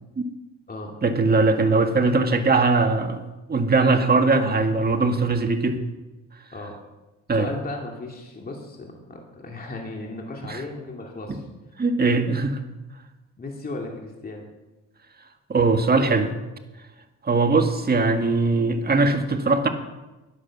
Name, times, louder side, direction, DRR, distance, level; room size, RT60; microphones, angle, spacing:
voice 1, 1.0-3.2 3.5-5.8 7.3-7.5 10.5-10.6 11.3-11.4 11.8-12.6 15.5-16.3 17.2-19.7, right 3 dB, 30° right, 6 dB, 1.8 m, -20 dB
voice 2, 7.3-11.4 13.4-14.5, left 2 dB, 30° left, 0 dB, 2.6 m, -36 dB
11.5 x 11.0 x 7.3 m, 1.1 s
cardioid pair, 90°, 30 cm